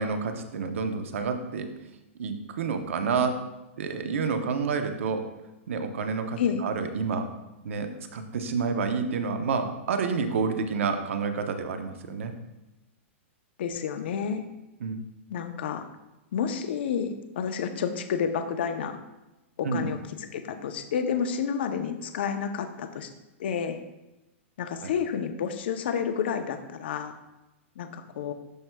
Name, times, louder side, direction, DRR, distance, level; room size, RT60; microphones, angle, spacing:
voice 1, 0.0-1.7 2.2-3.4 3.8-5.2 5.7-7.3 7.6-12.3 14.8-15.0 19.6-19.9 24.8-24.9, right 5 dB, 75° right, 7 dB, 0.8 m, -29 dB
voice 2, 13.6-14.4 15.3-15.9 16.3-19.0 19.6-23.1 23.4-23.8 24.6-27.1 27.8-28.3, left 7 dB, 50° left, 8 dB, 0.6 m, -30 dB
12.0 x 4.5 x 2.2 m, 1.0 s
supercardioid pair, 180°, 7 cm